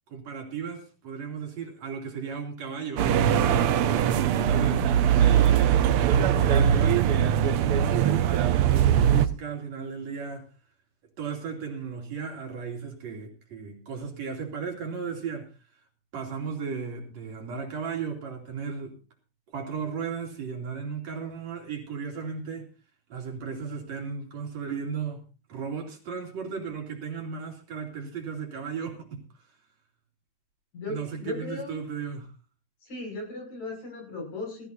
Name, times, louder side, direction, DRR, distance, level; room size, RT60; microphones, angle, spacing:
voice 1, 0.1-3.3 4.4-4.8 5.2-10.5 11.2-15.5 16.1-19.0 19.5-22.7 23.1-25.2 25.5-29.5 30.9-32.3, right 6 dB, 60° right, 4.0 m, -35 dB
sound 1, 3.0-9.3, right 9 dB, 80° right, 1.3 m, -21 dB
voice 2, 30.7-31.8 32.8-34.7, left 2 dB, 65° left, 7.8 m, -37 dB
18.5 x 15.0 x 2.7 m
omnidirectional pair, 3.5 m